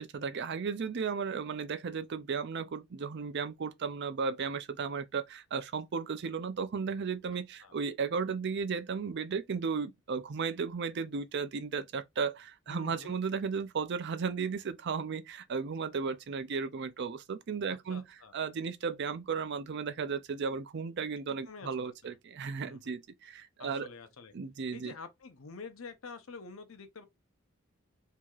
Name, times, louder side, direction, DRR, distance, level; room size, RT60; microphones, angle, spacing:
voice 1, 0.0-18.0 18.3-23.9 24.3-24.9, right 5 dB, 55° right, 0.5 m, -35 dB
voice 2, 12.7-13.2 17.7-18.3 21.5-22.1 22.5-22.8 23.6-24.3 24.7-27.1, left 4 dB, 80° left, 0.8 m, -48 dB
4.6 x 2.8 x 2.4 m
head